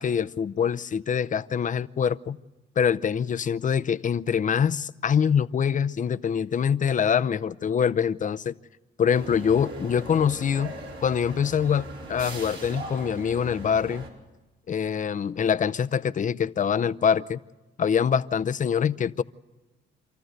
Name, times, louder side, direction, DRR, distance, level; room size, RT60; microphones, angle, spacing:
voice 1, 0.0-2.4 2.8-8.5 9.0-10.7 11.0-14.1 14.7-17.4 17.8-19.2, left 7 dB, 40° left, 0.6 m, -24 dB
sound 1, 9.1-14.1, right 2 dB, 70° right, 4.6 m, -40 dB
27.0 x 14.0 x 7.9 m
cardioid pair, 90°, 20 cm